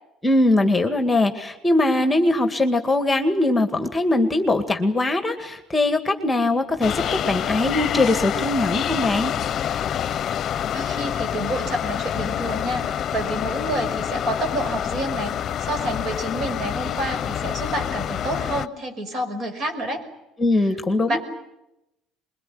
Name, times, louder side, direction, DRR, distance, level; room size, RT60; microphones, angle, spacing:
voice 1, 0.2-9.3 20.4-21.2, left 2 dB, 15° left, 7 dB, 2.1 m, -21 dB
sound 1, 6.8-18.7, left 9 dB, 45° left, 0.9 m, -27 dB
voice 2, 10.7-20.0 21.1-21.2, right 1 dB, 50° right, 7 dB, 5.7 m, -29 dB
24.0 x 22.5 x 9.5 m, 0.88 s
cardioid pair, 110°, 0 cm